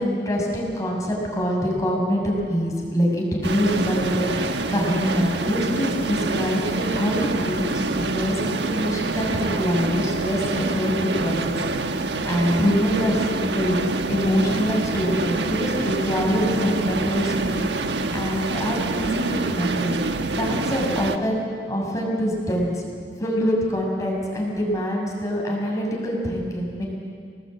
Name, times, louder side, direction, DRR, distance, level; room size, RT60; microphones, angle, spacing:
voice 1, 0.0-13.8 14.1-17.9 18.1-19.9 20.4-22.8 23.2-26.8, equal, 20° left, -2 dB, 6.2 m, -25 dB
sound 1, 3.4-21.2, right 3 dB, 70° right, 1.3 m, -26 dB
28.5 x 19.0 x 8.8 m, 2.2 s
head